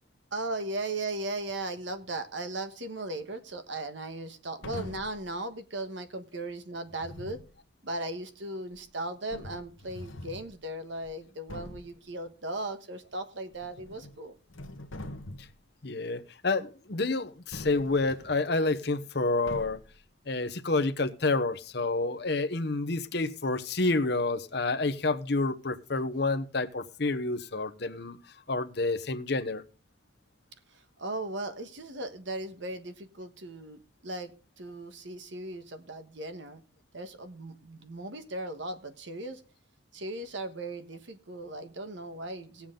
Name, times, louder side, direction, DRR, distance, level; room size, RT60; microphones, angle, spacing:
voice 1, 0.3-7.4 7.8-14.3 30.7-34.3 34.6-36.6 36.9-39.4 39.9-42.7, right 2 dB, 70° right, 1.3 m, -37 dB
sound 1, 4.6-5.2 6.9-7.5 8.7-8.8 9.3-10.5 11.0-11.1 11.5-12.0 13.5-14.2 14.5-15.6 17.5-18.5 19.5-20.0, left 1 dB, 85° left, 1.1 m, -43 dB
voice 2, 15.8-19.8 20.3-28.2 28.5-29.6, left 3 dB, 55° left, 0.9 m, -29 dB
18.5 x 7.2 x 3.8 m
head